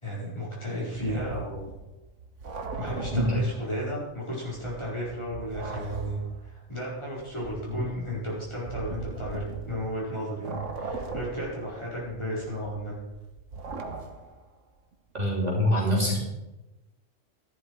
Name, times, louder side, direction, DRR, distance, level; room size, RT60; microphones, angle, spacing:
voice 1, 0.0-1.7 2.7-13.0, equal, 25° left, -6 dB, 4.9 m, -34 dB
sound 1, 0.9-4.0 4.3-10.1 10.4-14.5, right 4 dB, 85° right, 1.6 m, -39 dB
voice 2, 15.1-16.2, left 1 dB, 35° right, -4 dB, 3.4 m, -24 dB
13.5 x 11.5 x 4.8 m, 1.0 s
omnidirectional pair, 1.2 m